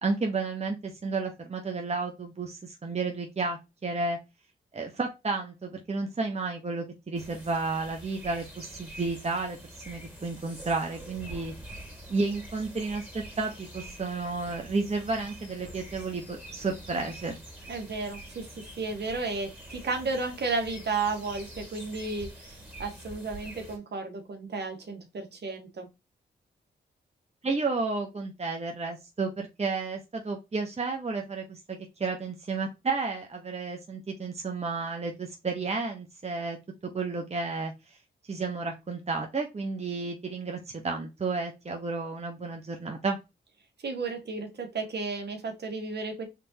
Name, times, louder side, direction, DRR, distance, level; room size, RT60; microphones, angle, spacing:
voice 1, 0.0-4.2 4.7-9.6 9.9-11.5 12.1-17.4 27.4-36.6 36.9-37.7 38.3-43.2, right 3 dB, 35° right, 2 dB, 1.2 m, -32 dB
sound 1, 7.1-23.8, right 1 dB, 10° right, 2.8 m, -46 dB
voice 2, 17.7-25.9 43.8-46.2, right 3 dB, 60° right, 3 dB, 1.9 m, -33 dB
5.0 x 3.7 x 2.9 m, 0.24 s
supercardioid pair, 50°, 19 cm